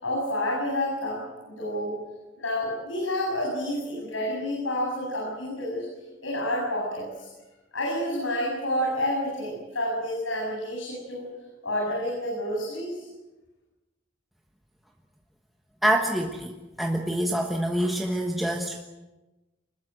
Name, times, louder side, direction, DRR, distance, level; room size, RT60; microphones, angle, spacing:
voice 1, 0.0-2.0 2.4-5.8 6.2-7.3 7.7-11.3 11.6-13.0, left 1 dB, 90° left, -2 dB, 7.8 m, -29 dB
voice 2, 15.8-18.8, right 1 dB, ahead, 1 dB, 1.3 m, -26 dB
25.5 x 21.0 x 7.8 m, 1.1 s
head